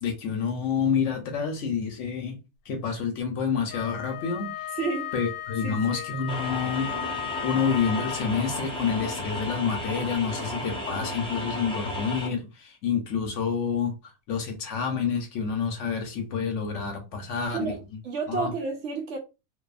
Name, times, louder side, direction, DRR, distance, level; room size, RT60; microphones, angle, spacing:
voice 1, 0.0-2.4 2.7-4.7 5.1-6.9 7.4-13.9 14.3-17.8 18.3-18.5, left 6 dB, 65° left, 0.9 m, -28 dB
Wind instrument woodwind instrument, 3.7-8.6, left 14 dB, 90° left, 1.1 m, -36 dB
voice 2, 4.7-5.1 5.6-6.1 17.5-17.8 18.0-19.2, right 4 dB, 65° right, 0.8 m, -31 dB
sound 1, 6.3-12.3, left 1 dB, 5° left, 0.4 m, -33 dB
2.7 x 2.2 x 2.4 m
omnidirectional pair, 1.5 m